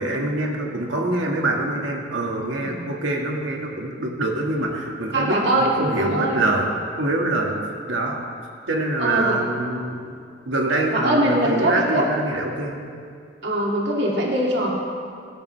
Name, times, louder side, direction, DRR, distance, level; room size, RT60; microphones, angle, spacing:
voice 1, 0.0-6.7 7.0-7.6 7.9-8.2 8.7-10.2 10.5-12.8, right 2 dB, 90° right, 0 dB, 2.1 m, -25 dB
voice 2, 5.1-5.7 6.0-6.4 9.0-9.4 10.9-12.0 13.4-14.8, right 1 dB, 65° right, -4 dB, 2.7 m, -22 dB
23.0 x 12.5 x 3.5 m, 2.2 s
head